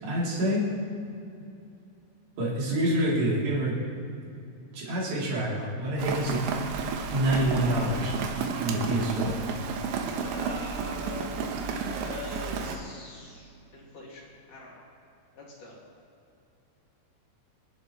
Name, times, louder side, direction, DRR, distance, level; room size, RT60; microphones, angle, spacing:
voice 1, 0.0-0.6 2.4-3.7 4.7-6.4 7.1-8.1 8.6-9.3, right 1 dB, 60° right, -6 dB, 5.4 m, -27 dB
Rain, 6.0-12.8, right 5 dB, 75° right, 3.1 m, -32 dB
voice 2, 10.2-11.3 11.7-14.8 15.4-15.8, left 2 dB, 45° left, -4 dB, 3.5 m, -43 dB
26.5 x 11.5 x 3.3 m, 2.7 s
omnidirectional pair, 5.8 m